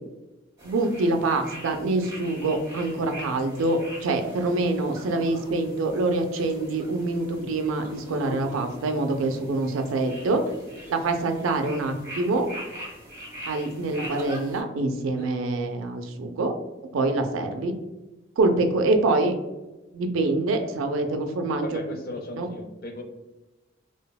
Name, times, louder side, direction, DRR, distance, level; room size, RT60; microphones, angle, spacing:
sound 1, 0.6-14.6, equal, 20° right, 1.0 m, -43 dB
voice 1, 0.6-10.4 10.9-12.5 13.5-16.5 16.9-17.7 18.4-19.3 19.9-21.7 22.4-22.5, right 2 dB, 85° right, 5 dB, 0.4 m, -25 dB
sound 2, 4.2-4.4 4.8-5.5 6.3-6.9 7.8-9.9 10.7-11.4 11.8-12.0 12.5-13.1 14.0-14.4 15.2-15.3, equal, 45° right, 0.7 m, -43 dB
voice 2, 21.6-23.0, left 1 dB, 50° left, 4 dB, 0.4 m, -36 dB
3.3 x 2.0 x 2.2 m, 1.1 s
head